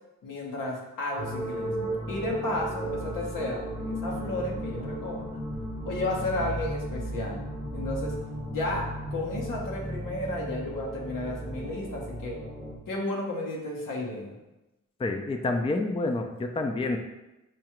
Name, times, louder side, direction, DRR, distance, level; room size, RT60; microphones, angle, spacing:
voice 1, 0.2-5.3 5.8-7.4 7.7-8.2 8.5-12.4 12.9-14.4, left 1 dB, 85° left, -2 dB, 0.9 m, -33 dB
sound 1, 1.2-12.8, right 1 dB, 15° right, 0.8 m, -35 dB
voice 2, 15.0-17.0, left 2 dB, 20° left, 4 dB, 0.4 m, -28 dB
4.8 x 2.3 x 2.9 m, 0.98 s
cardioid pair, 55°, 31 cm